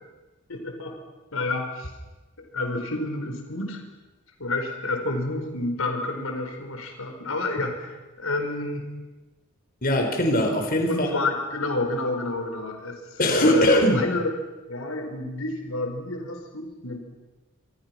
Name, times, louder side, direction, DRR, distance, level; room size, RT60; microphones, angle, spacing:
voice 1, 0.5-1.0 1.3-1.9 2.4-3.8 4.4-8.9 10.9-13.7 13.9-14.3 14.7-17.0, left 2 dB, 90° left, 3 dB, 4.6 m, -29 dB
voice 2, 9.8-11.1 13.2-14.1, left 1 dB, 45° left, 3 dB, 4.7 m, -21 dB
28.0 x 25.0 x 6.0 m, 1.2 s
head